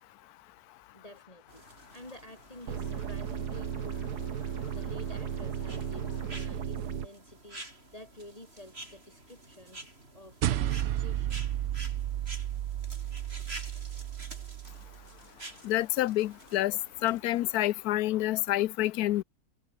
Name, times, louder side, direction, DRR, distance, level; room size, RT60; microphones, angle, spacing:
voice 1, 0.9-1.6 1.9-4.4 4.7-11.4, left 1 dB, 20° left, 6.4 m, -50 dB
sound 1, 1.5-17.7, right 1 dB, 40° right, 6.5 m, -50 dB
sound 2, 2.7-7.1, right 7 dB, 85° right, 2.0 m, -35 dB
sound 3, 10.4-15.1, right 12 dB, 65° right, 0.6 m, -32 dB
voice 2, 15.6-19.2, left 15 dB, 75° left, 1.1 m, -28 dB
omnidirectional pair, 1.7 m